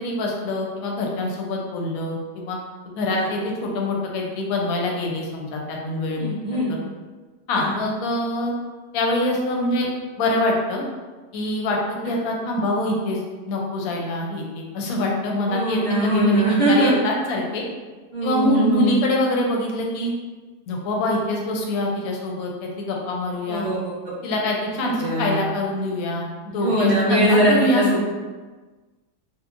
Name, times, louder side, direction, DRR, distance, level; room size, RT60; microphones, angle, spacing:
voice 1, 0.0-2.6 3.0-6.4 6.7-6.8 7.5-8.5 8.9-9.9 10.2-10.8 11.3-13.2 13.5-17.6 18.2-20.1 20.7-23.7 24.2-27.9, left 1 dB, 70° left, 0 dB, 0.9 m, -25 dB
voice 2, 6.2-6.7 7.5-7.7 15.5-16.9 18.1-18.9 23.5-23.9 24.8-25.4 26.5-28.0, right 1 dB, 90° right, -11 dB, 0.4 m, -21 dB
2.9 x 2.3 x 2.5 m, 1.3 s
omnidirectional pair, 1.7 m